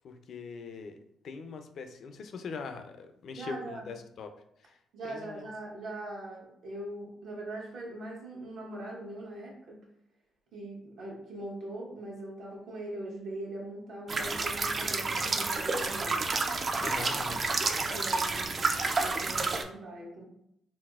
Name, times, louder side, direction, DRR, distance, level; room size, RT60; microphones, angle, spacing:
voice 1, 0.0-1.0 1.2-4.3 4.6-4.8 5.0-5.5 16.8-17.5, left 4 dB, 65° left, 7 dB, 0.4 m, -41 dB
voice 2, 3.4-3.9 4.9-9.8 10.5-16.3 17.9-18.7 19.0-20.2, right 1 dB, 70° right, -3 dB, 1.1 m, -41 dB
sound 1, 14.1-19.6, right 3 dB, 40° right, 0.3 m, -30 dB
4.0 x 2.0 x 2.3 m, 0.75 s
cardioid pair, 90°, 0 cm